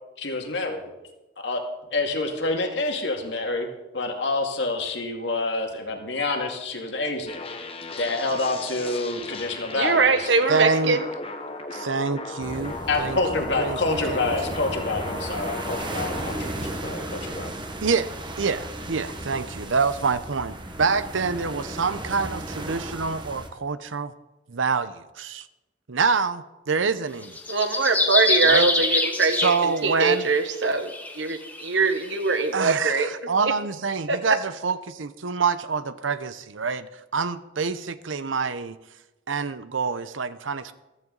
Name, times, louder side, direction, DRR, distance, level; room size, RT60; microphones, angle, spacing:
voice 1, 0.2-0.9 1.4-1.6 1.9-3.7 3.9-7.4 8.0-10.3 12.6-17.5, left 2 dB, 65° left, 2 dB, 2.2 m, -27 dB
sound 1, 7.3-16.4, left 3 dB, 30° left, 1.2 m, -36 dB
voice 2, 9.8-11.0 27.5-30.9 31.2-33.1 34.1-34.2, right 4 dB, 70° right, 8 dB, 1.3 m, -22 dB
voice 3, 10.5-11.0 11.7-14.3 17.8-18.1 18.4-24.1 24.5-25.5 25.9-27.4 28.4-28.7 29.4-30.3 32.5-38.8 39.3-40.7, right 5 dB, 90° right, 14 dB, 0.8 m, -26 dB
sound 2, 12.4-23.5, right 1 dB, 25° right, 1.3 m, -35 dB
sound 3, 27.2-30.2 30.8-32.3, left 2 dB, 10° left, 1.2 m, -25 dB
15.0 x 14.0 x 4.0 m, 1.0 s
head